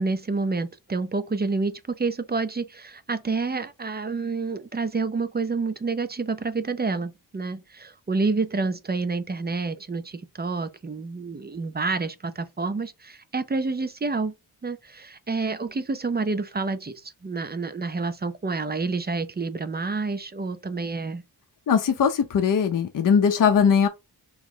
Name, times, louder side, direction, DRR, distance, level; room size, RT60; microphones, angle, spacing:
voice 1, 0.0-14.3 14.6-21.2, right 3 dB, 25° right, 0.4 m, -28 dB
voice 2, 21.7-23.9, left 7 dB, 50° left, 0.6 m, -20 dB
3.1 x 3.0 x 3.7 m
wide cardioid pair, 75°, 41 cm